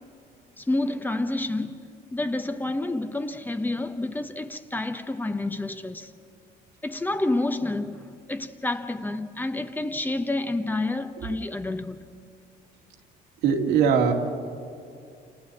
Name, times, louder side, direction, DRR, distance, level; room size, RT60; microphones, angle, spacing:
voice 1, 0.6-6.1 6.8-12.0, left 2 dB, 10° left, 0.9 m, -29 dB
voice 2, 13.4-14.1, right 7 dB, 90° right, 2.3 m, -20 dB
29.5 x 28.5 x 4.2 m
cardioid pair, 110°, 17 cm